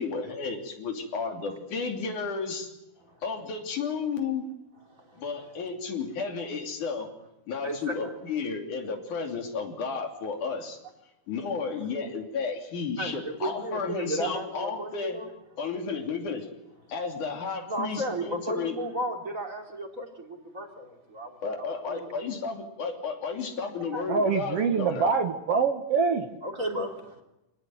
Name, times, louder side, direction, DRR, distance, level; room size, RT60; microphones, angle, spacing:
voice 1, 0.0-2.7 3.2-4.5 5.2-7.1 7.5-10.8 11.3-15.2 15.6-16.5 16.9-18.8 21.4-25.1, left 5 dB, 75° left, 3 dB, 4.4 m, -32 dB
voice 2, 7.6-8.1 11.8-11.9 13.0-15.3 17.7-22.3 23.8-24.3 26.4-27.2, right 1 dB, 25° right, 2 dB, 3.4 m, -34 dB
voice 3, 24.1-26.4, right 5 dB, 60° right, 7 dB, 2.1 m, -25 dB
26.5 x 18.5 x 9.4 m, 0.92 s
omnidirectional pair, 3.6 m